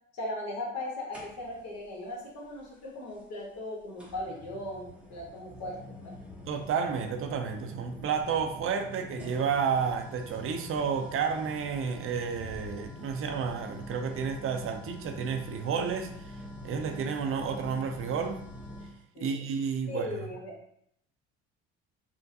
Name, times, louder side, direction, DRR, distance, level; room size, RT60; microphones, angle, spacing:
voice 1, 0.1-6.1 19.1-19.3 19.9-20.5, left 1 dB, 60° left, -3 dB, 1.2 m, -38 dB
sound 1, 1.1-1.8 3.1-3.2 4.0-19.0, left 1 dB, 5° right, 0.8 m, -45 dB
voice 2, 6.5-16.4 16.6-18.4 19.2-20.1, right 6 dB, 45° right, 6 dB, 0.5 m, -31 dB
3.5 x 2.1 x 2.7 m, 0.73 s
supercardioid pair, 75°, 29 cm